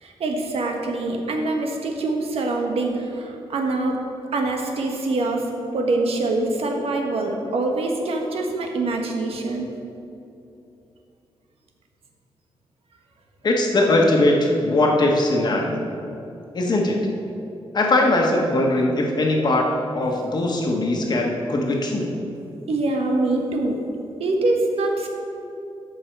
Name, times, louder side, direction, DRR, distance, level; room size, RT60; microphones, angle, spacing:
voice 1, 0.0-4.0 4.3-5.5 5.7-9.7 22.7-23.8 24.2-25.1, right 2 dB, 80° right, 2 dB, 1.3 m, -24 dB
voice 2, 13.4-15.8 16.5-16.9 17.7-19.7 19.9-22.1, left 2 dB, 45° left, 0 dB, 1.4 m, -20 dB
13.5 x 5.4 x 4.7 m, 2.7 s
wide cardioid pair, 155°, 10 cm